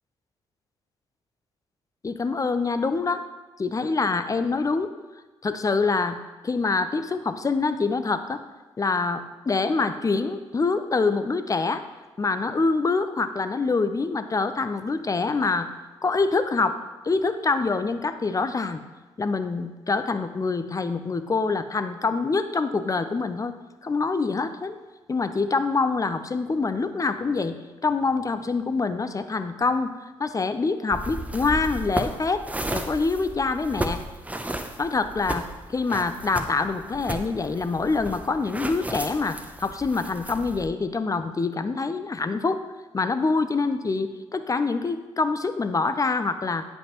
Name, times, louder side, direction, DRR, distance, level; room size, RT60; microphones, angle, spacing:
voice 1, 2.0-3.2 3.6-4.9 5.4-6.2 6.4-8.4 8.8-11.8 12.2-15.7 16.0-16.8 17.0-18.8 19.2-23.5 23.8-24.8 25.1-27.6 27.8-29.9 30.2-32.4 32.7-34.0 34.8-42.6 42.9-46.6, left 4 dB, 25° left, 10 dB, 0.5 m, -25 dB
sound 1, 30.9-40.7, right 1 dB, 10° right, 0.7 m, -34 dB
9.9 x 5.3 x 3.0 m, 1.2 s
figure-of-eight pair, 40°, 13 cm